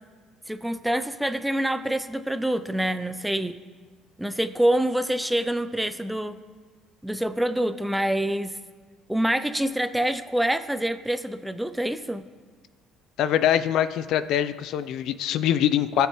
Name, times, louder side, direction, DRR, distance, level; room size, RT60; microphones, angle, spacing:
voice 1, 0.5-3.5 4.2-6.4 7.0-8.6 9.1-12.3, right 1 dB, 5° right, 11 dB, 0.4 m, -26 dB
voice 2, 13.2-16.1, left 10 dB, 60° left, 13 dB, 0.4 m, -23 dB
17.0 x 7.1 x 3.0 m, 1.5 s
cardioid pair, 140°, 0 cm